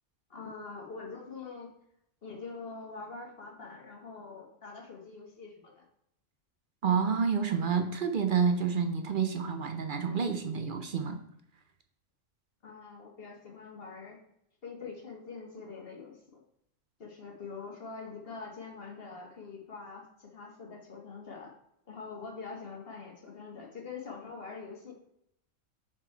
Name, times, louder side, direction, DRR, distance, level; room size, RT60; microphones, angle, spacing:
voice 1, 0.3-1.7 2.2-5.9 12.6-14.2 14.6-16.4 17.0-21.5 21.9-24.9, left 4 dB, 50° left, 0 dB, 1.4 m, -44 dB
voice 2, 6.8-11.2, right 6 dB, 50° right, 7 dB, 0.7 m, -29 dB
5.9 x 4.5 x 4.5 m, 0.76 s
omnidirectional pair, 1.3 m